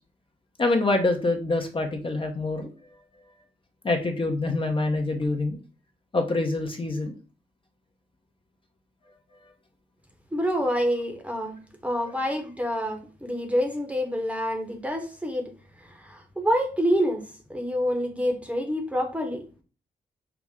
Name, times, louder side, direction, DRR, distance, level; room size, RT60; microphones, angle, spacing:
voice 1, 0.6-3.3 3.8-5.6 6.1-7.2 9.0-9.5, left 2 dB, 30° left, 3 dB, 0.7 m, -26 dB
voice 2, 10.3-11.5 11.8-15.5 15.8-17.2 17.5-19.6, equal, 10° right, 4 dB, 0.9 m, -27 dB
5.8 x 2.0 x 3.6 m, 0.36 s
cardioid pair, 70°, 17 cm